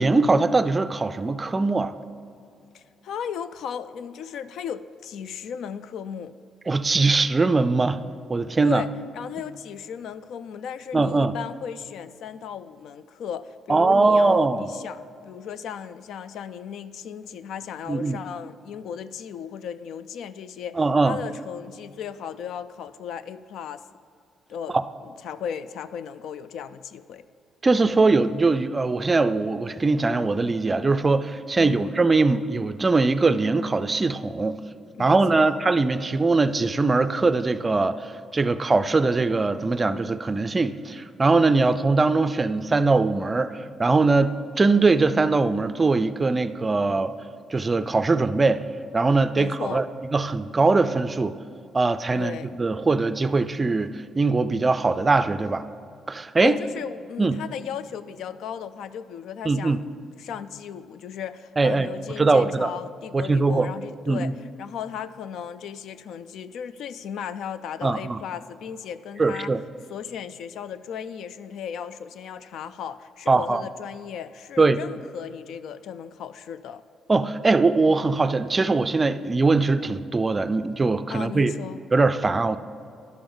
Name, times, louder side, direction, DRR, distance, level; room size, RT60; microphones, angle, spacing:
voice 1, 0.0-1.9 6.7-8.0 8.3-8.8 10.9-11.3 13.7-14.7 17.9-18.2 20.8-21.2 24.7-24.8 27.6-34.6 35.0-47.1 47.5-48.6 48.9-49.9 50.1-51.4 51.7-55.7 56.1-56.6 57.2-57.3 59.4-59.8 61.6-61.9 62.2-62.7 63.1-63.7 64.1-64.3 67.8-68.2 69.2-69.6 73.3-73.6 74.6-74.8 77.1-81.5 81.9-82.6, right 3 dB, 25° right, 12 dB, 0.4 m, -21 dB
voice 2, 2.7-6.3 8.6-23.8 24.5-24.8 25.0-27.2 31.6-31.9 34.9-35.6 49.3-49.9 52.1-52.6 56.4-59.8 60.2-69.5 69.9-76.8 81.1-81.8, left 8 dB, 75° left, 14 dB, 0.3 m, -36 dB
11.0 x 6.9 x 3.8 m, 2.5 s
cardioid pair, 90°, 0 cm